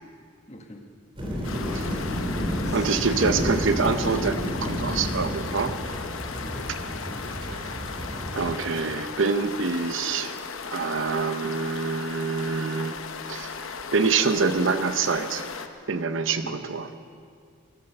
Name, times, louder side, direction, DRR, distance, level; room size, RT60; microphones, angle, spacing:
voice 1, 0.5-0.8 1.7-2.0 2.5-2.8 3.1-3.4 6.4-7.3 16.4-16.6, left 1 dB, 30° left, 3 dB, 1.5 m, -40 dB
sound 1, 1.2-8.5, equal, 25° right, 3.1 m, -31 dB
sound 2, 1.4-15.7, left 5 dB, 70° left, 0.9 m, -37 dB
voice 2, 1.7-2.0 2.7-5.7 7.5-7.7 8.1-10.4 10.7-13.0 13.3-15.5 15.9-16.9, right 4 dB, 60° right, 10 dB, 0.7 m, -26 dB
18.5 x 11.5 x 6.8 m, 2.2 s
head